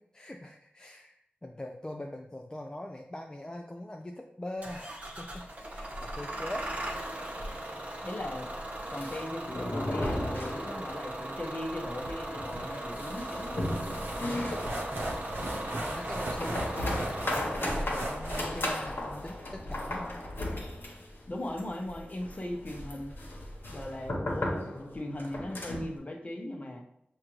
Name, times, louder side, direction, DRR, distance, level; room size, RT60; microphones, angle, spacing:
voice 1, 0.0-5.5 5.7-6.8 7.5-7.8 11.2-11.4 14.4-14.6 14.9-20.2, left 1 dB, 20° left, 2 dB, 0.3 m, -43 dB
Bus / Engine starting, 4.6-20.8, right 1 dB, 40° right, 0.8 m, -39 dB
voice 2, 8.0-8.5 8.9-13.7 21.3-23.2 23.7-24.7 24.9-26.8, left 1 dB, 40° left, 2 dB, 0.7 m, -38 dB
sound 1, 8.7-11.1 11.4-11.5 11.8-11.9 12.3-26.0, left 1 dB, 70° left, 1.0 m, -36 dB
sound 2, 12.0-18.9, right 1 dB, 70° right, 0.9 m, -38 dB
6.4 x 2.3 x 3.0 m, 0.78 s
wide cardioid pair, 80°, 4 cm